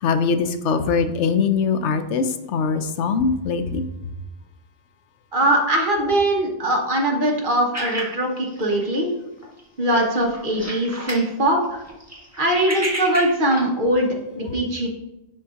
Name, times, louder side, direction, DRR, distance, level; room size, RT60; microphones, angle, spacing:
voice 1, 0.0-3.8 14.5-14.6, left 5 dB, 85° left, 9 dB, 0.9 m, -22 dB
voice 2, 5.3-9.1 9.8-11.8 12.4-14.1 14.3-14.9, right 1 dB, 50° right, 0 dB, 1.3 m, -21 dB
sound 1, 7.7-9.1 9.4-9.6 9.9-11.3 11.6-13.6, right 1 dB, 15° right, 1.6 m, -31 dB
11.0 x 4.0 x 2.5 m, 0.94 s
omnidirectional pair, 1.2 m